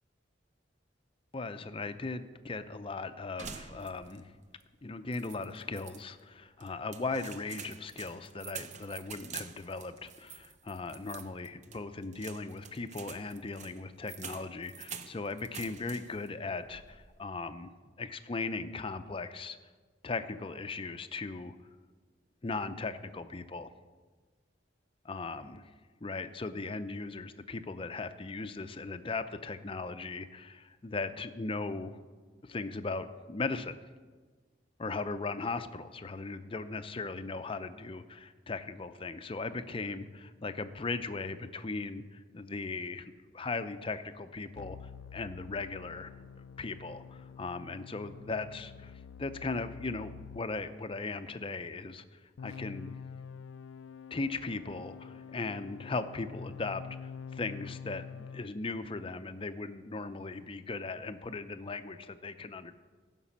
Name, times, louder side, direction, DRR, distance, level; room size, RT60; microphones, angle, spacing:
voice 1, 1.3-4.3 4.8-17.7 18.0-19.6 20.0-21.5 22.4-23.7 25.0-25.6 26.0-32.0 32.4-33.7 34.8-46.1 46.4-48.9 49.2-53.0 54.1-62.7, left 3 dB, 30° left, 10 dB, 0.5 m, -38 dB
sound 1, 3.4-4.3 4.6-4.7 5.1-6.0 6.6-16.3 16.6-17.2, right 7 dB, 40° right, 0.6 m, -47 dB
sound 2, 44.5-50.5 52.4-58.5, left 6 dB, 90° left, 0.4 m, -47 dB
15.5 x 6.0 x 7.3 m, 1.4 s
head